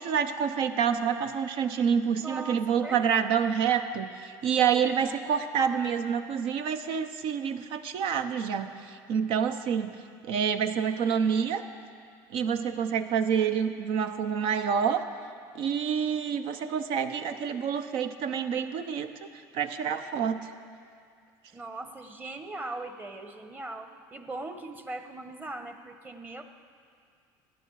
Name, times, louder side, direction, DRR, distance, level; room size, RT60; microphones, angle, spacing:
voice 1, 0.0-10.0 10.2-11.6 12.3-15.1 15.5-20.5, right 7 dB, 65° right, 9 dB, 0.8 m, -28 dB
voice 2, 2.2-3.0 4.8-4.9 21.5-26.4, right 2 dB, 20° right, 7 dB, 1.1 m, -40 dB
15.5 x 10.5 x 4.8 m, 2.2 s
supercardioid pair, 90°, 10 cm